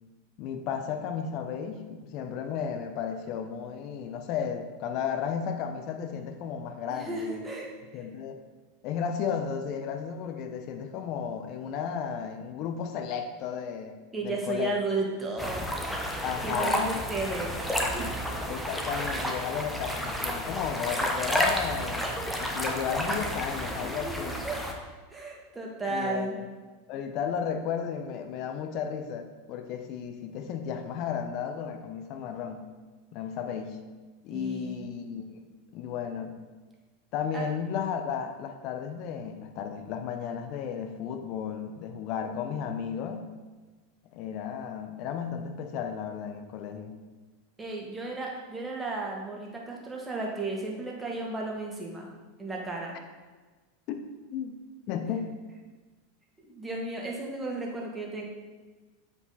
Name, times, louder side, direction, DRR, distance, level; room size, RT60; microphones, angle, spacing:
voice 1, 0.4-7.5 7.9-8.4 8.8-14.8 16.2-16.9 18.5-22.1 22.4-24.4 25.9-26.4 26.9-32.7 33.1-33.8 34.2-36.4 37.1-43.3 44.1-46.9 53.9-54.0 54.3-54.6 54.9-55.3, left 7 dB, 50° left, 6 dB, 0.8 m, -34 dB
voice 2, 6.9-7.7 14.1-15.7 16.4-17.5 17.9-18.3 23.8-24.6 25.1-26.4 34.3-34.8 37.3-37.5 47.6-52.1 52.4-53.0 56.4-58.2, right 3 dB, 15° right, -2 dB, 1.8 m, -34 dB
sound 1, 15.4-24.7, equal, 5° left, 1.0 m, -31 dB
8.1 x 4.9 x 4.1 m, 1.3 s
hypercardioid pair, 90°, 0 cm